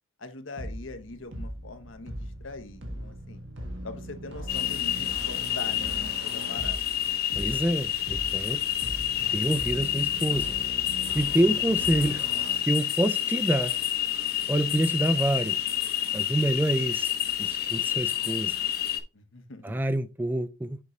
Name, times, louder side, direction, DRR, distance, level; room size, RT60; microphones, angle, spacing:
voice 1, 0.2-3.4 3.8-6.9 16.3-16.5 19.1-19.6, left 3 dB, 85° left, 1.0 m, -42 dB
sound 1, 0.6-12.6, equal, 70° right, 1.6 m, -40 dB
sound 2, 4.5-19.0, left 12 dB, 50° left, 0.8 m, -29 dB
voice 2, 7.4-8.6 9.3-10.5 11.1-12.3 12.7-13.7 14.5-15.6 16.1-17.1 17.4-18.6 19.6-20.8, right 1 dB, 10° right, 0.3 m, -27 dB
6.7 x 5.3 x 3.1 m
head